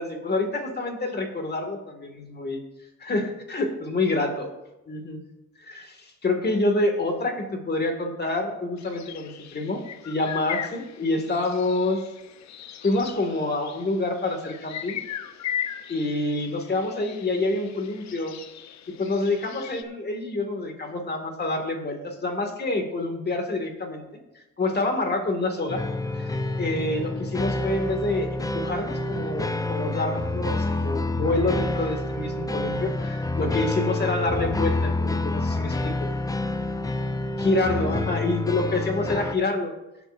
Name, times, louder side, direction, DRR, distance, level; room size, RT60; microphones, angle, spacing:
voice 1, 0.0-2.6 3.0-4.5 4.9-5.2 5.6-12.0 12.8-15.0 15.9-18.4 19.0-24.1 24.3-25.8 26.1-26.3 26.6-36.1 37.4-39.7, left 2 dB, 35° left, 4 dB, 2.1 m, -27 dB
sound 1, 8.8-19.8, left 10 dB, 65° left, 0.8 m, -38 dB
sound 2, 25.7-39.4, left 2 dB, 10° left, 0.6 m, -28 dB
19.0 x 8.0 x 2.6 m, 0.96 s
cardioid pair, 90°, 30 cm